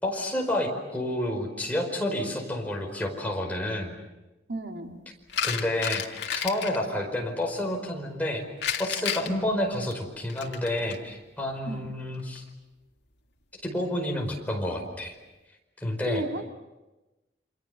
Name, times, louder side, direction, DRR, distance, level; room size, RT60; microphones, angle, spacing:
voice 1, 0.0-4.0 5.4-6.0 6.4-8.4 8.8-12.4 13.6-15.1 15.8-16.2, left 1 dB, 10° left, 1 dB, 4.9 m, -29 dB
voice 2, 4.5-5.0 9.3-9.4 11.7-12.0 16.1-16.5, right 1 dB, 75° right, 3 dB, 2.4 m, -34 dB
sound 1, 5.3-6.8 8.6-11.0 12.1-12.4, left 8 dB, 70° left, 2.0 m, -31 dB
29.0 x 26.5 x 6.9 m, 1.1 s
head